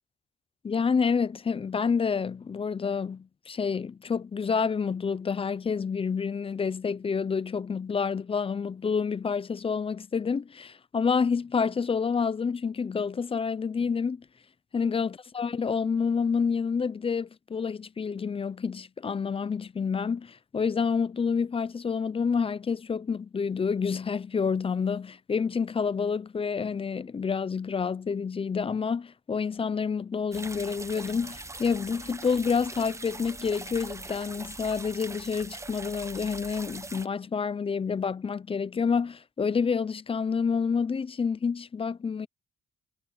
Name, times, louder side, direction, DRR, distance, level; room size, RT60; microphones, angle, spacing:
voice 1, 0.6-14.2 14.7-42.3, left 5 dB, 30° left, 0.6 m, -28 dB
sound 1, 30.3-37.1, right 2 dB, 15° right, 1.0 m, -41 dB
cardioid pair, 90°, 20 cm